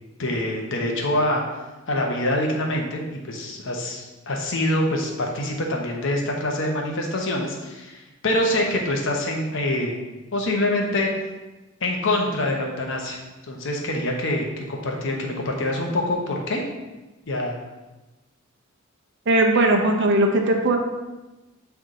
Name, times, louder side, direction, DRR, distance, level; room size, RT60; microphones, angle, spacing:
voice 1, 0.2-1.4 1.9-10.0 10.3-11.1 11.8-16.6 17.3-17.6, left 1 dB, 65° left, 1 dB, 1.0 m, -25 dB
voice 2, 19.3-20.8, right 2 dB, 60° right, 3 dB, 0.8 m, -19 dB
7.4 x 3.5 x 3.8 m, 1.1 s
head